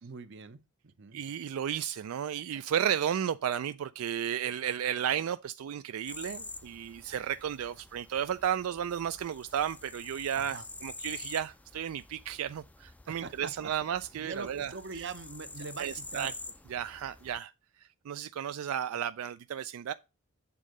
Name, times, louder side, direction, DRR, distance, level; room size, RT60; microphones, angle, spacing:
voice 1, 0.0-1.2 10.3-10.7 13.1-13.7 14.2-16.3, right 4 dB, 60° right, 0.8 m, -42 dB
voice 2, 1.1-14.7 15.8-16.3 16.7-17.5 17.8-19.9, right 9 dB, 90° right, 0.3 m, -33 dB
sound 1, 6.1-17.4, left 3 dB, 5° left, 0.3 m, -47 dB
8.4 x 3.7 x 6.4 m
head